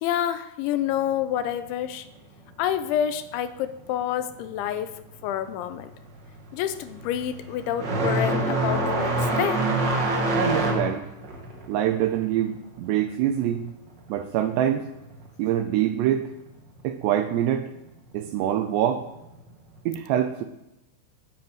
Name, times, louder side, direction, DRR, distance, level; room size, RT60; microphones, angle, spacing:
voice 1, 0.0-2.1 2.6-5.9 6.5-9.7, left 10 dB, 80° left, 11 dB, 2.9 m, -28 dB
sound 1, 5.2-5.5 5.8-14.2 14.4-15.5 16.5-16.6 17.4-17.5 19.2-19.4, right 2 dB, 60° right, 1.1 m, -26 dB
voice 2, 10.3-11.1 11.7-13.7 14.1-14.9 15.4-16.3 16.8-17.7 18.1-19.1 19.9-20.4, right 11 dB, 80° right, 8 dB, 2.5 m, -25 dB
10.5 x 10.5 x 8.9 m, 0.92 s
omnidirectional pair, 5.6 m